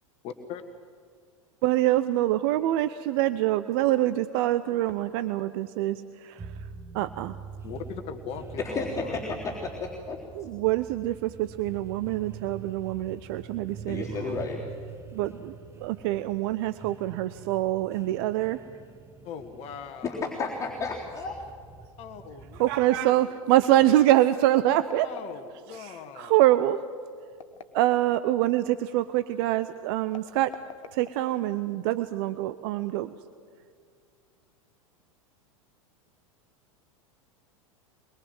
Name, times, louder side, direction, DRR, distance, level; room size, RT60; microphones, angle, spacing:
voice 1, 0.2-0.6 7.6-9.2 19.2-20.5 22.0-23.4 25.0-26.3, left 7 dB, 35° left, 7 dB, 1.6 m, -40 dB
voice 2, 1.6-6.5 6.9-7.4 10.3-14.4 15.1-15.5 15.8-18.6 22.6-25.1 25.7-26.8 27.7-30.5 30.9-33.1, right 14 dB, 45° right, 13 dB, 0.7 m, -25 dB
sound 1, 6.4-23.2, right 6 dB, 15° right, 1.2 m, -45 dB
voice 3, 8.6-10.2 13.9-14.6 20.0-20.1 20.4-21.3, left 4 dB, 15° left, -4 dB, 3.7 m, -32 dB
sound 2, 24.3-25.8 27.3-28.4 30.1-31.6, left 7 dB, 65° left, 1.2 m, -45 dB
23.0 x 22.0 x 7.8 m, 2.2 s
figure-of-eight pair, 90°, 18 cm